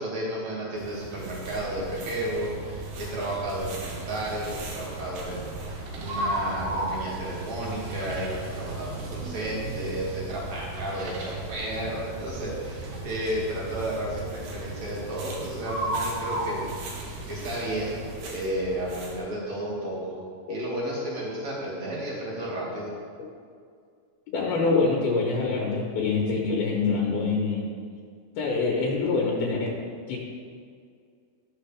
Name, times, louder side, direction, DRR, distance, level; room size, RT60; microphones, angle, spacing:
voice 1, 0.0-20.2 20.5-22.9, right 1 dB, 50° right, -6 dB, 3.2 m, -33 dB
sound 1, 0.7-18.2, right 1 dB, 70° right, 1.5 m, -36 dB
sound 2, 1.1-19.2, right 3 dB, 85° right, 3.3 m, -41 dB
voice 2, 24.3-27.7 28.4-29.7 30.1-30.2, left 4 dB, 75° left, -3 dB, 2.8 m, -25 dB
13.5 x 6.4 x 3.4 m, 2.2 s
omnidirectional pair, 4.6 m